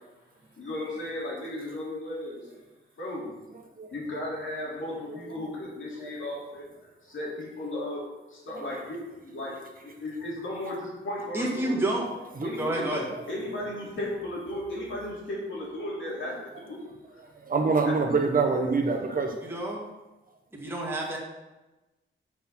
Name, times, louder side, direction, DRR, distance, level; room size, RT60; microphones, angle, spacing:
voice 1, 0.6-2.5 3.0-3.3 3.9-6.7 7.0-8.0 8.3-11.9 12.4-12.9 13.3-16.8 17.1-17.2, left 1 dB, 70° left, -5 dB, 3.3 m, -35 dB
voice 2, 11.3-12.1 12.6-13.1 19.4-19.9 20.5-21.2, right 1 dB, 10° right, -3 dB, 2.1 m, -29 dB
voice 3, 17.4-19.3, right 4 dB, 45° right, 2 dB, 1.2 m, -25 dB
8.5 x 6.0 x 5.7 m, 1.1 s
wide cardioid pair, 175°, 21 cm